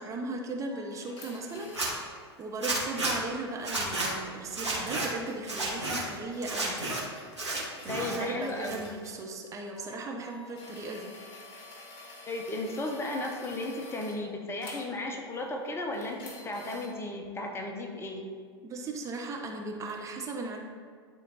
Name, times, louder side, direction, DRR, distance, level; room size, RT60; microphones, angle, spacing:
voice 1, 0.0-6.8 7.8-11.1 18.6-20.6, right 2 dB, 20° right, 1 dB, 0.9 m, -37 dB
sound 1, 0.7-2.0 4.9-9.1 9.8-14.2 14.6-14.9 15.3-16.9 19.8-19.9, left 2 dB, 35° left, 2.0 m, -49 dB
Zipper (clothing), 1.6-1.9 2.6-3.1 3.6-4.1 4.5-5.1 5.4-6.0 6.4-7.0 7.3-8.2 8.5-9.1, right 2 dB, 85° right, 1.9 m, -32 dB
voice 2, 7.9-8.8 12.3-18.3, left 2 dB, 15° left, 2 dB, 0.9 m, -35 dB
10.5 x 4.5 x 4.1 m, 2.1 s
figure-of-eight pair, 90°, 14 cm